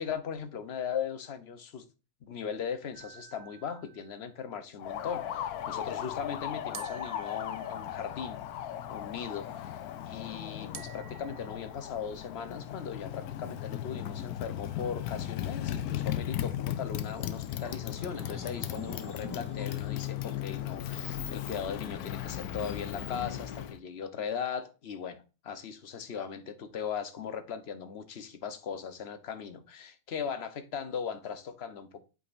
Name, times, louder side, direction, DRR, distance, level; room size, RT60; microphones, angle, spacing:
voice 1, 0.0-1.8 2.3-9.7 10.0-32.0, left 7 dB, 50° left, 0.9 m, -38 dB
sound 1, 2.9-4.4 6.7-8.4 10.7-11.8, right 7 dB, 55° right, 0.8 m, -50 dB
Motorcycle, 4.8-23.8, left 11 dB, 75° left, 1.1 m, -37 dB
sound 2, 17.6-22.8, left 3 dB, 10° left, 1.5 m, -47 dB
8.2 x 5.1 x 2.5 m
omnidirectional pair, 1.6 m